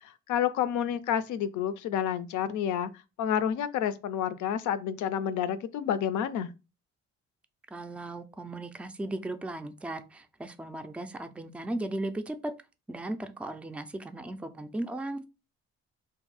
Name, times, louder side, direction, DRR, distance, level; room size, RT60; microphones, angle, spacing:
voice 1, 0.0-2.9 3.2-6.5, left 9 dB, 75° left, 0.5 m, -29 dB
voice 2, 7.7-12.5 12.9-15.3, right 1 dB, 5° right, 0.3 m, -36 dB
2.6 x 2.6 x 3.9 m
cardioid pair, 90°, 30 cm